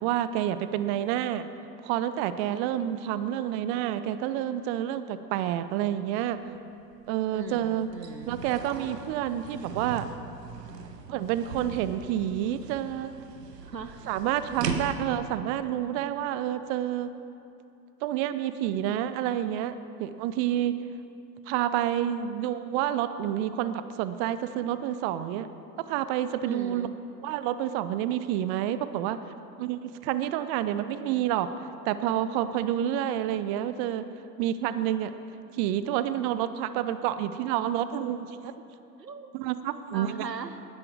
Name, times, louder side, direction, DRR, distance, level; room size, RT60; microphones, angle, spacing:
voice 1, 0.0-1.5 1.8-6.4 7.1-7.9 8.3-10.1 11.1-13.1 14.1-17.1 18.0-20.8 21.5-25.5 25.8-26.9 27.2-29.2 29.6-31.5 31.9-34.0 34.4-35.1 35.5-38.5 39.3-40.3, right 11 dB, 40° right, 12 dB, 0.7 m, -29 dB
sound 1, 6.4-6.5 6.9-15.3, right 5 dB, 75° right, 1.3 m, -39 dB
voice 2, 7.3-8.4 13.6-14.0 26.4-26.9 39.0-39.3 39.9-40.7, right 5 dB, 90° right, 10 dB, 0.9 m, -39 dB
19.5 x 10.5 x 4.8 m, 2.7 s
figure-of-eight pair, 85°, 49 cm